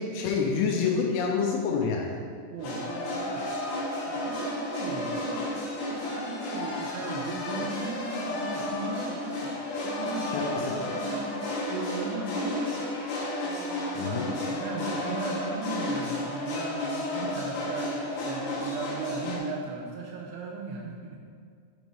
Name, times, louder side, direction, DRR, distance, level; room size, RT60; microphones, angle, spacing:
voice 1, 0.0-2.2 10.3-10.7 13.9-14.3, left 5 dB, 85° left, 0 dB, 3.1 m, -27 dB
voice 2, 2.5-3.4 4.1-9.6 9.8-12.9 13.4-21.2, right 3 dB, 85° right, -1 dB, 2.4 m, -37 dB
sound 1, 2.6-19.4, left 1 dB, 65° left, 3.0 m, -32 dB
7.5 x 3.0 x 5.3 m, 2.2 s
omnidirectional pair, 5.4 m